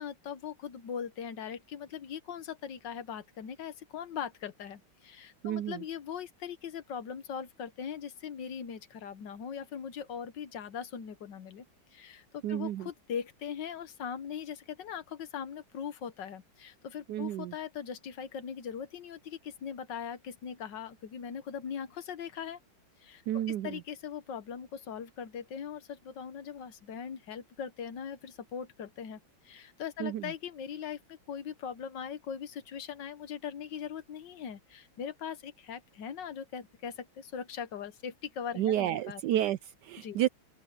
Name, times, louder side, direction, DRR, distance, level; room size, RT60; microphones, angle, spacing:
voice 1, 0.0-11.6 11.9-22.6 23.0-23.2 23.6-39.2 40.0-40.2, left 7 dB, 65° left, 1.7 m, -40 dB
voice 2, 5.4-5.8 12.4-12.9 17.1-17.5 23.3-23.8 30.0-30.3 38.6-40.3, right 12 dB, 75° right, 1.0 m, -31 dB
open air
omnidirectional pair, 2.2 m